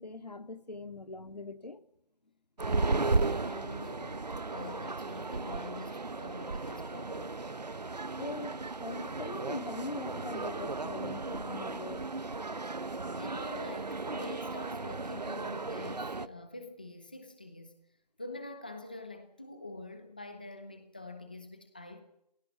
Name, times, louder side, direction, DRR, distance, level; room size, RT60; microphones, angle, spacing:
voice 1, 0.0-1.8 8.2-12.1, left 3 dB, 75° left, 2.4 m, -42 dB
sound 1, 2.6-16.3, right 3 dB, 85° right, 1.2 m, -35 dB
voice 2, 2.8-7.3 13.1-17.8 18.2-22.0, left 2 dB, 15° left, 0.9 m, -46 dB
29.5 x 17.5 x 7.3 m
figure-of-eight pair, 175°, 21 cm